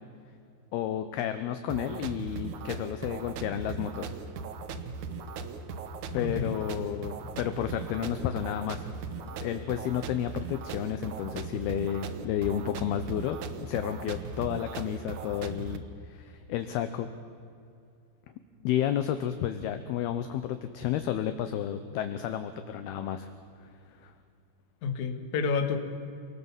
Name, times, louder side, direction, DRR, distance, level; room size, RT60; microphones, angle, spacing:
voice 1, 0.7-4.1 6.1-8.9 9.4-17.1 18.6-23.3 23.6-23.7 24.0-24.1, left 10 dB, 75° left, 9 dB, 2.5 m, -31 dB
sound 1, 1.7-15.8, right 4 dB, 90° right, 1.6 m, -38 dB
voice 2, 6.2-6.5 24.8-25.8, left 5 dB, 50° left, 6 dB, 2.6 m, -29 dB
28.5 x 19.5 x 7.3 m, 2.5 s
omnidirectional pair, 5.3 m